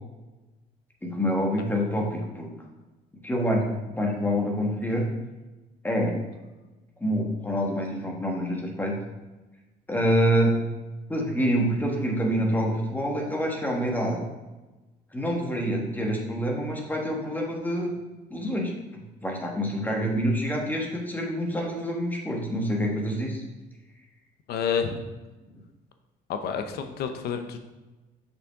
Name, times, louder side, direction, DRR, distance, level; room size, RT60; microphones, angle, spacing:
voice 1, 1.0-2.5 3.2-3.7 3.9-5.1 5.8-6.1 7.0-9.0 9.9-10.6 11.1-14.3 15.1-17.9 18.3-18.7 19.2-23.4, equal, 10° left, -1 dB, 1.4 m, -26 dB
voice 2, 24.5-25.0 26.3-27.6, left 6 dB, 70° left, 7 dB, 0.7 m, -29 dB
6.4 x 5.6 x 3.6 m, 1.1 s
cardioid pair, 110°, 17 cm